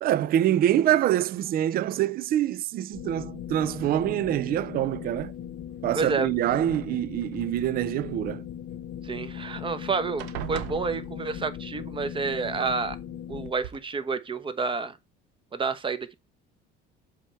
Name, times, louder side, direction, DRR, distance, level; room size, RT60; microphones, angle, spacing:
voice 1, 0.0-5.3 5.8-8.4, right 12 dB, 45° right, 0.4 m, -25 dB
sound 1, 2.9-13.5, left 10 dB, 55° left, 0.6 m, -39 dB
sound 2, 5.2-5.8 6.6-7.4 9.2-9.3 9.6-9.9 10.2-11.6 12.8-12.9 13.4-13.8, right 11 dB, 85° right, 0.8 m, -40 dB
voice 2, 6.0-6.3 9.0-13.0 13.3-15.0 15.5-16.1, right 4 dB, 25° right, 1.0 m, -29 dB
7.4 x 3.5 x 4.4 m
supercardioid pair, 100°, 21 cm